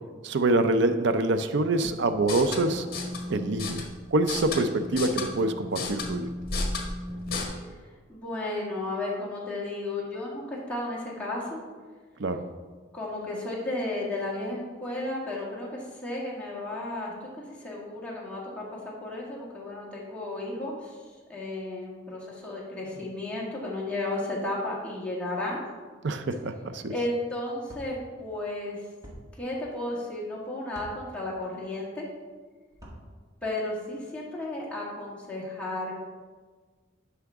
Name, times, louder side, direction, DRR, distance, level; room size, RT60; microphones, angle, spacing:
voice 1, 0.2-2.9 3.3-3.8 4.1-6.3 12.2-12.4 26.0-26.9, right 2 dB, 65° right, 9 dB, 0.5 m, -25 dB
sound 1, 2.2-7.4, left 3 dB, 50° left, 1.5 m, -34 dB
voice 2, 8.1-11.6 12.9-21.0 21.3-25.6 26.9-27.9 28.2-28.8 29.4-32.1 33.4-35.9, left 2 dB, 5° left, -6 dB, 1.9 m, -33 dB
sound 2, 27.7-27.9 29.0-29.2 30.7-30.9 32.7-33.0, equal, 20° right, 1.8 m, -45 dB
11.5 x 5.8 x 3.5 m, 1.4 s
head